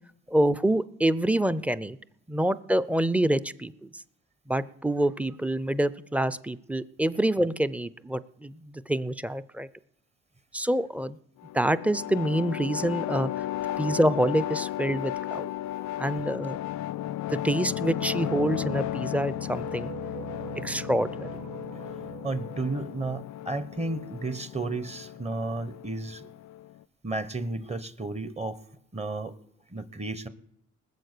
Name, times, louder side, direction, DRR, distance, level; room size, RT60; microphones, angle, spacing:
voice 1, 0.3-2.0 2.3-4.0 4.5-9.7 10.5-11.2 11.5-13.5 13.8-15.5 16.0-16.6 17.1-19.9 20.6-21.3, right 1 dB, 5° right, 16 dB, 0.6 m, -26 dB
sound 1, 11.4-26.8, left 13 dB, 70° left, 0.5 m, -35 dB
sound 2, 17.6-23.8, right 14 dB, 65° right, 0.7 m, -44 dB
voice 2, 22.2-26.3 27.0-28.6 28.9-29.3 29.7-30.3, right 2 dB, 20° right, 14 dB, 0.9 m, -33 dB
20.0 x 7.6 x 6.7 m, 0.74 s
cardioid pair, 90°, 30 cm